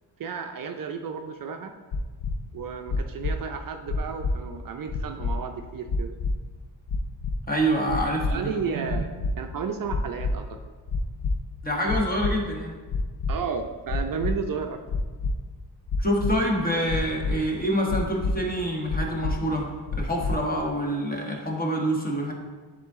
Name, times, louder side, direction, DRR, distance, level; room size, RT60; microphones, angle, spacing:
voice 1, 0.2-1.7 2.5-6.1 8.3-9.1 9.4-10.6 13.3-14.8, right 6 dB, 50° right, 5 dB, 0.5 m, -32 dB
sound 1, 1.9-2.3 2.9-3.3 3.9-4.3 4.9-5.3 5.9-6.3 6.9-7.3 7.9-8.3 8.9-9.3 9.9-10.3 10.9-11.3 11.9-12.3 12.9-13.3 13.9-14.3 14.9-15.3 15.9-16.3 16.9-17.3 17.9-18.3 18.9-19.3 19.9-20.3, left 3 dB, 60° left, 0.6 m, -27 dB
voice 2, 7.5-8.6 11.6-12.7 16.0-22.3, equal, 20° left, -1 dB, 1.1 m, -26 dB
10.5 x 3.8 x 3.6 m, 1.4 s
wide cardioid pair, 150°, 42 cm